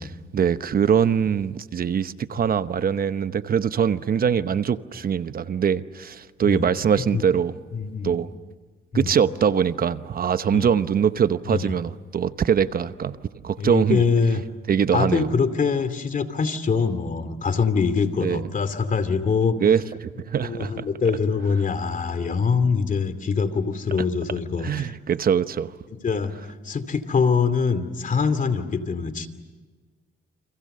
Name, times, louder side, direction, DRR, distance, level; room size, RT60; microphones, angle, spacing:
voice 1, 0.0-7.5 8.0-8.3 8.9-13.2 13.4-14.0 14.7-15.3 18.2-18.4 19.6-20.9 24.6-25.7, right 7 dB, 50° right, 0.9 m, -23 dB
voice 2, 7.7-8.2 8.9-9.1 10.5-10.7 11.5-11.6 13.6-14.4 14.9-19.6 20.4-24.9 25.9-26.3 26.6-29.3, left 5 dB, 40° left, 2.6 m, -24 dB
29.5 x 26.0 x 6.7 m
cardioid pair, 90°, 20 cm